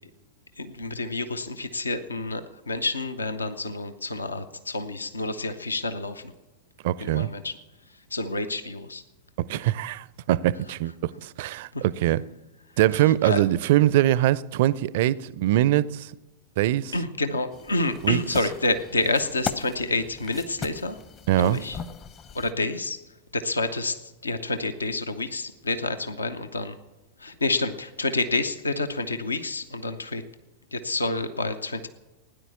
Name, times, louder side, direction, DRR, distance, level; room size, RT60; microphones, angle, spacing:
voice 1, 0.6-6.3 7.0-7.6 8.1-9.0 11.7-11.8 13.2-13.4 16.9-21.0 21.4-21.8 22.3-23.0 23.3-26.8 27.2-30.2 30.7-31.9, left 2 dB, 80° left, 0.7 m, -28 dB
voice 2, 6.8-7.3 9.4-12.2 12.8-16.1 16.6-16.9 18.0-18.2 21.3-21.6, right 14 dB, 50° right, 0.4 m, -23 dB
sound 1, 17.5-22.5, left 6 dB, 30° left, 0.9 m, -39 dB
17.0 x 10.0 x 7.0 m
figure-of-eight pair, 90°, 0 cm